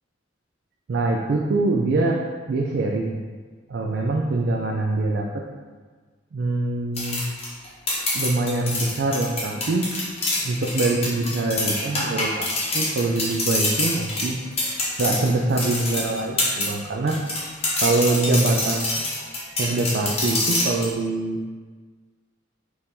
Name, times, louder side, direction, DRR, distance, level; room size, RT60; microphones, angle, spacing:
voice 1, 0.9-2.2 2.5-3.2 3.7-5.4 6.3-7.2 8.1-9.8 10.4-12.5 12.7-14.4 15.0-17.2 17.8-18.9 19.6-21.4, right 2 dB, 60° right, 0 dB, 0.4 m, -24 dB
sound 1, 7.0-16.7 17.1-20.9, left 2 dB, 30° left, 0.8 m, -26 dB
4.4 x 2.6 x 3.6 m, 1.4 s
head